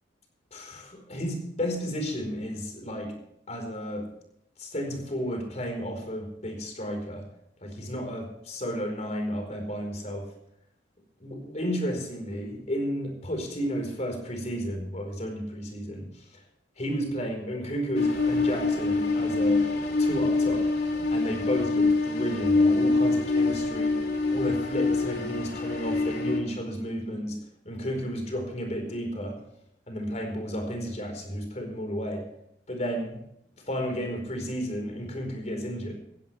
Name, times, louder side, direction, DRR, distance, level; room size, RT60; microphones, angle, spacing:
voice 1, 0.5-3.1 3.5-4.1 4.6-7.3 7.6-10.3 11.2-16.2 16.8-19.7 20.0-20.7 21.1-24.0 24.3-27.4 27.6-29.4 29.9-32.2 32.7-33.2 33.6-35.9, equal, 40° left, 4 dB, 4.5 m, -32 dB
sound 1, 17.9-26.4, left 3 dB, 60° left, 2.8 m, -25 dB
16.5 x 16.0 x 3.4 m, 0.74 s
head